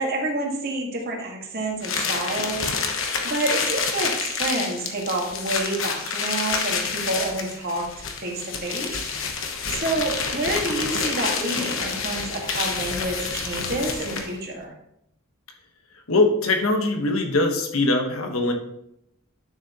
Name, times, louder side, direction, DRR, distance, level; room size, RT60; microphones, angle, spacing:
voice 1, 0.0-2.7 3.2-7.9 8.2-8.9 9.3-14.7, right 2 dB, 50° right, 0 dB, 1.9 m, -28 dB
sound 1, 1.8-14.4, left 5 dB, 65° left, 1.1 m, -28 dB
voice 2, 16.1-18.5, left 2 dB, 85° left, 3 dB, 1.4 m, -21 dB
10.5 x 6.6 x 3.0 m, 0.77 s
head